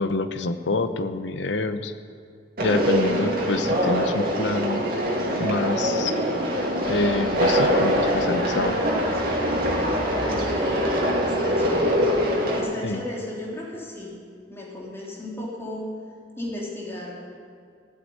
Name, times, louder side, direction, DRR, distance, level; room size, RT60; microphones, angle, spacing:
voice 1, 0.0-1.9 2.6-4.8 5.4-6.1 6.9-8.8 12.8-13.0, left 2 dB, 90° left, 10 dB, 0.8 m, -26 dB
Conversation, 2.6-12.6, equal, 55° right, 2.6 m, -23 dB
sound 1, 6.8-12.3, right 1 dB, 25° right, 4.6 m, -35 dB
voice 2, 10.3-12.0 12.6-14.2 14.5-15.9 16.4-17.2, left 1 dB, 15° left, -4 dB, 3.0 m, -35 dB
16.5 x 8.2 x 9.5 m, 2.3 s
head